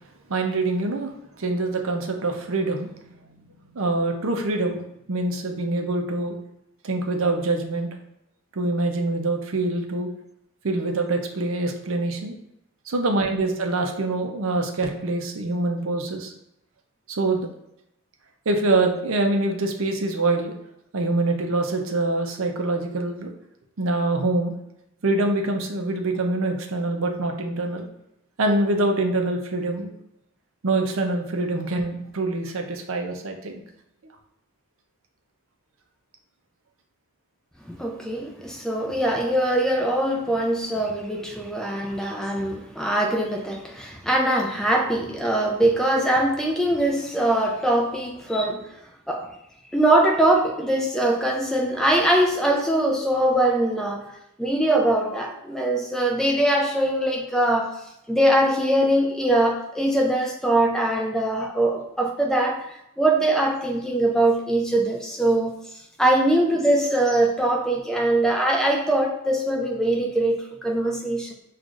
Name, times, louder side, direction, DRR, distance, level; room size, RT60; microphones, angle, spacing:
voice 1, 0.3-1.1 1.4-3.4 3.7-4.8 5.1-6.4 6.8-7.9 8.5-10.1 10.6-12.4 12.9-16.3 17.1-17.5 18.5-20.5 20.9-23.3 23.8-24.5 25.0-27.9 28.4-29.9 30.6-33.6, right 2 dB, 65° right, 4 dB, 0.6 m, -25 dB
voice 2, 37.7-48.7 49.1-49.3 49.7-54.1 54.4-57.7 58.1-62.7 63.0-65.5 66.0-71.3, right 1 dB, ahead, 0 dB, 0.4 m, -22 dB
6.1 x 2.4 x 2.4 m, 0.81 s
head